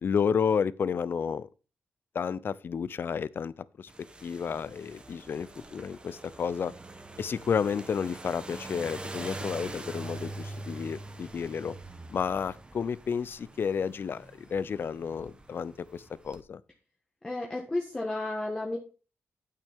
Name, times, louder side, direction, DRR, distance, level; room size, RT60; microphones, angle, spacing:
voice 1, 0.0-1.5 2.1-3.5 3.8-3.9 4.2-6.7 7.2-11.7 12.1-16.6, left 6 dB, 50° left, 0.4 m, -31 dB
sound 1, 3.9-16.4, right 2 dB, 20° right, 1.1 m, -44 dB
voice 2, 17.2-18.8, left 2 dB, 20° left, 1.5 m, -32 dB
9.1 x 8.5 x 3.5 m
wide cardioid pair, 115°, 5 cm